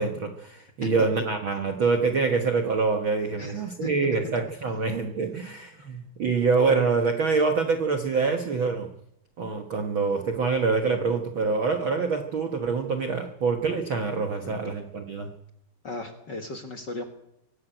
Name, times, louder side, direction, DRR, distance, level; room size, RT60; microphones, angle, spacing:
voice 1, 0.0-8.9 9.4-15.3, right 4 dB, 75° right, 5 dB, 1.1 m, -25 dB
voice 2, 3.4-4.4 5.7-5.9 14.4-14.7 15.8-17.0, left 3 dB, 50° left, 5 dB, 1.3 m, -37 dB
23.5 x 12.5 x 9.1 m, 0.77 s
omnidirectional pair, 4.5 m